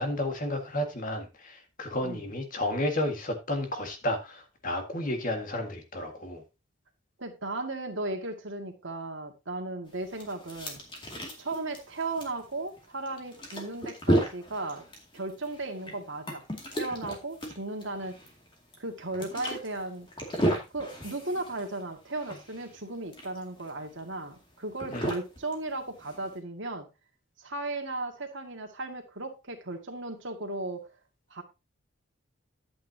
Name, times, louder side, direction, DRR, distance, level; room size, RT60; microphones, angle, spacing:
voice 1, 0.0-6.4 24.9-25.1, left 1 dB, 40° left, 5 dB, 1.8 m, -32 dB
voice 2, 7.2-10.8 11.4-14.8 15.1-16.4 16.7-18.2 18.8-20.1 20.7-26.9 27.4-30.9 31.3-31.4, right 2 dB, 65° right, 4 dB, 2.0 m, -36 dB
sound 1, 9.9-26.4, right 1 dB, 25° left, 2.3 m, -34 dB
11.0 x 8.5 x 2.8 m, 0.25 s
head